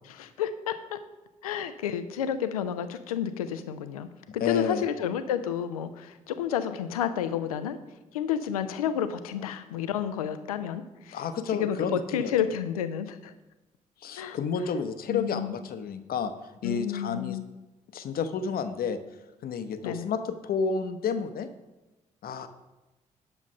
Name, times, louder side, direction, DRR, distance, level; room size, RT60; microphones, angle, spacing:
voice 1, 0.1-1.0 1.4-4.1 4.3-7.8 8.1-11.2 11.5-13.3 14.2-14.4 15.1-15.5 16.6-17.4 19.8-20.1, left 9 dB, 80° left, 12 dB, 0.6 m, -30 dB
voice 2, 4.4-4.8 11.1-12.3 14.0-16.3 16.6-17.4 17.9-19.0 19.4-21.5 22.2-22.5, left 6 dB, 55° left, 10 dB, 0.9 m, -30 dB
9.9 x 7.1 x 5.3 m, 1.1 s
figure-of-eight pair, 40°, 18 cm